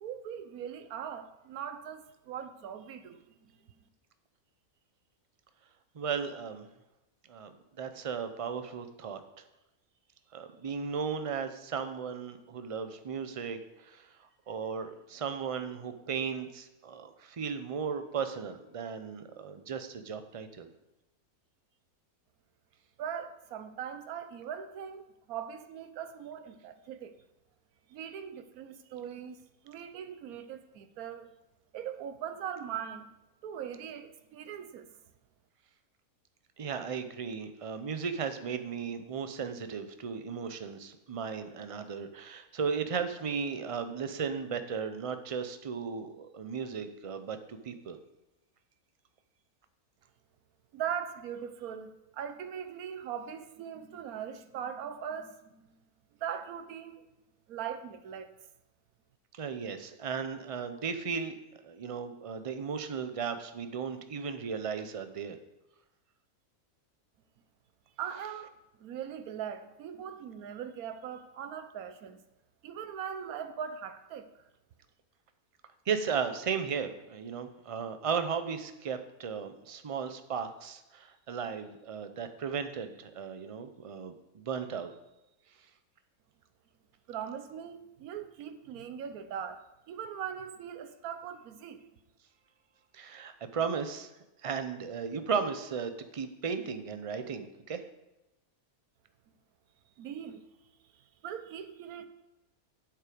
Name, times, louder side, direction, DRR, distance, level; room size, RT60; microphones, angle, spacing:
voice 1, 0.0-3.3 23.0-27.1 27.9-29.4 29.6-31.3 31.7-33.1 33.4-34.9 50.7-55.5 56.2-57.1 57.5-58.3 68.0-68.5 68.8-72.2 72.6-74.4 87.1-89.6 89.9-91.8 100.0-100.4 101.2-102.1, right 8 dB, 80° right, 1.2 m, -40 dB
voice 2, 5.9-6.7 7.3-9.2 10.3-20.7 36.6-48.0 59.3-61.4 61.6-65.4 75.9-84.9 92.9-94.1 94.4-97.8, right 6 dB, 40° right, 0.4 m, -36 dB
8.3 x 7.6 x 5.1 m
omnidirectional pair, 1.5 m